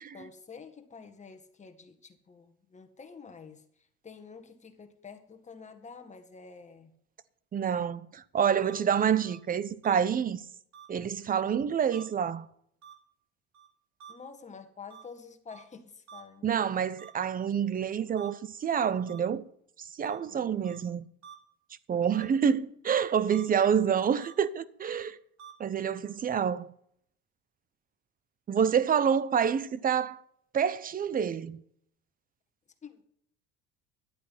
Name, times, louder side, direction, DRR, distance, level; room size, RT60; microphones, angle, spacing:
voice 1, 0.1-6.9 14.1-16.7 20.3-20.7 32.8-33.0, left 5 dB, 25° left, 1.8 m, -49 dB
voice 2, 7.5-10.4 10.9-12.5 16.4-19.5 19.8-21.1 21.9-25.2 25.6-26.7 28.5-30.2 30.5-31.6, right 7 dB, 30° right, 0.8 m, -27 dB
sound 1, 8.6-8.8 9.2-9.4 9.8-10.0 10.7-10.9 11.9-12.0 12.8-12.9 13.5-13.7 14.0-14.1 14.9-15.0 15.5-15.6 16.1-16.2 17.0-17.1 18.2-18.3 19.1-19.2 20.0-20.2 20.6-20.8 21.2-21.3 22.1-22.3 23.3-23.4 24.2-24.3 24.9-25.1 25.4-25.5, right 8 dB, 65° right, 2.9 m, -49 dB
12.0 x 8.5 x 5.7 m
supercardioid pair, 110°, 30 cm